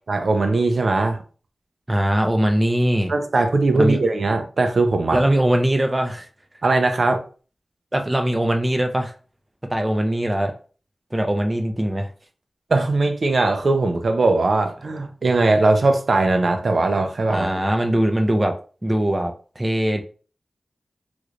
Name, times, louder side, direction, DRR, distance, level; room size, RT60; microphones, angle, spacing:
voice 1, 0.1-1.2 3.1-5.2 6.6-7.2 12.7-17.5, right 2 dB, 70° right, 0.6 m, -19 dB
voice 2, 1.9-3.1 3.8-4.0 5.1-6.3 7.9-9.1 9.7-10.6 11.1-12.1 17.3-18.6 18.8-20.0, right 1 dB, 20° right, 0.5 m, -21 dB
3.2 x 3.0 x 2.5 m
wide cardioid pair, 80°, 0 cm